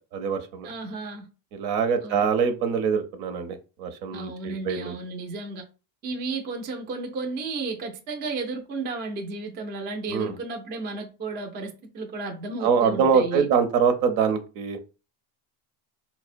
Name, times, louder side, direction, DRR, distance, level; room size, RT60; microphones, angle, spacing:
voice 1, 0.1-0.7 1.5-4.9 10.1-10.4 12.6-14.8, right 6 dB, 75° right, 0.8 m, -24 dB
voice 2, 0.6-1.3 2.0-2.2 4.1-5.6 6.0-13.5, right 3 dB, 25° right, 0.4 m, -33 dB
4.3 x 2.1 x 2.5 m
cardioid pair, 135°, 47 cm